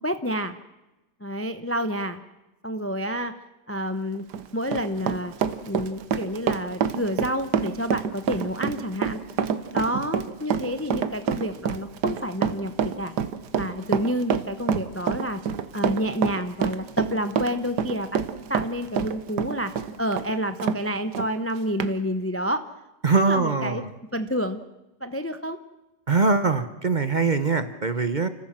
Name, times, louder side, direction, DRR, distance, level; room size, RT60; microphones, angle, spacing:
voice 1, 0.0-0.6 1.2-2.2 2.6-3.3 3.7-4.2 4.5-5.3 5.6-9.2 9.7-13.2 13.5-15.4 15.7-18.2 18.5-19.7 20.0-22.7 23.2-23.8 24.1-24.6 25.0-25.6, equal, 15° left, 9 dB, 0.5 m, -29 dB
Run, 4.1-20.8 21.1-21.3 21.8-21.9, right 7 dB, 90° right, 1.6 m, -27 dB
voice 2, 23.0-23.9 26.1-28.3, right 4 dB, 35° right, 10 dB, 0.9 m, -22 dB
30.0 x 15.0 x 7.5 m, 1.0 s
omnidirectional pair, 1.7 m